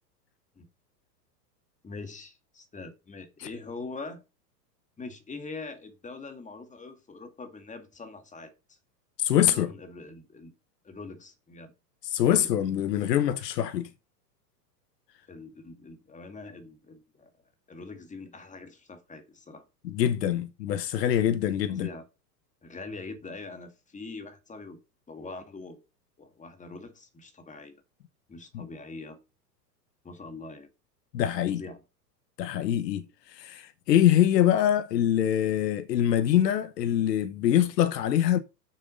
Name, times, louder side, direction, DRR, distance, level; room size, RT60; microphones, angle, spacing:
voice 1, 1.8-4.2 5.0-8.8 9.5-10.6 10.8-11.7 12.2-12.5 15.3-17.3 17.7-19.7 21.7-22.1 22.6-24.8 25.1-25.8 26.2-27.8 28.3-29.2 30.0-30.7 31.5-31.8, left 3 dB, 15° left, 2.0 m, -43 dB
voice 2, 9.2-9.7 12.1-13.9 19.8-21.9 28.5-28.7 31.1-31.6 32.4-38.4, left 11 dB, 75° left, 1.2 m, -24 dB
7.5 x 6.6 x 5.4 m
hypercardioid pair, 110°, 49 cm